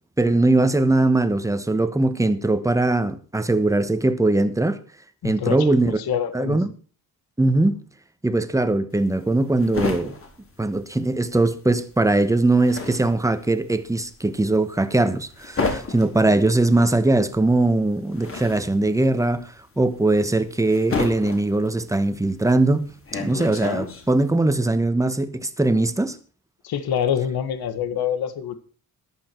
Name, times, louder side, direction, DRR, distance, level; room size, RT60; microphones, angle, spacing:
voice 1, 0.2-4.8 5.2-6.0 6.3-6.7 7.4-7.8 8.2-10.2 10.6-26.2, right 2 dB, 10° right, 1.2 m, -21 dB
voice 2, 5.2-6.6 26.6-28.5, left 8 dB, 80° left, 1.6 m, -26 dB
sound 1, 8.9-11.5 11.7-24.3, left 4 dB, 35° left, 3.6 m, -32 dB
14.0 x 11.5 x 4.5 m
cardioid pair, 130°, 37 cm